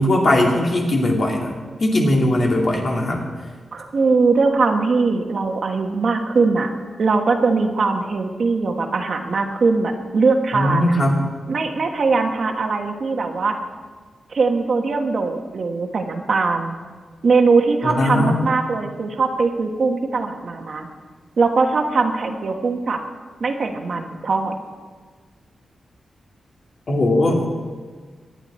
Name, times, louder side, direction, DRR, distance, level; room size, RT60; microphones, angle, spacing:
voice 1, 0.0-3.2 10.5-11.2 17.8-18.4 26.9-27.4, left 1 dB, 45° left, -1 dB, 2.8 m, -19 dB
voice 2, 3.7-6.7 7.0-10.9 11.5-13.5 14.3-16.8 17.2-20.9 21.4-23.0 23.4-24.5, right 4 dB, 55° right, 4 dB, 1.3 m, -20 dB
23.5 x 9.9 x 4.3 m, 1.5 s
wide cardioid pair, 140°, 0 cm